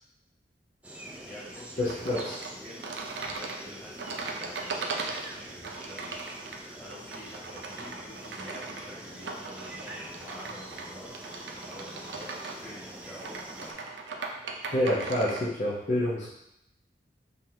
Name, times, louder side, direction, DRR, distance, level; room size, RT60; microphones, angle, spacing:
sound 1, 0.8-13.7, right 1 dB, 10° right, 0.4 m, -45 dB
voice 1, 1.0-2.8 3.3-13.9, left 1 dB, 10° left, -9 dB, 1.7 m, -48 dB
voice 2, 1.8-2.3 14.7-16.3, left 1 dB, 45° left, -9 dB, 0.8 m, -27 dB
sound 2, 1.9-15.5, right 3 dB, 80° right, 0.5 m, -39 dB
5.3 x 3.0 x 2.8 m, 0.79 s
head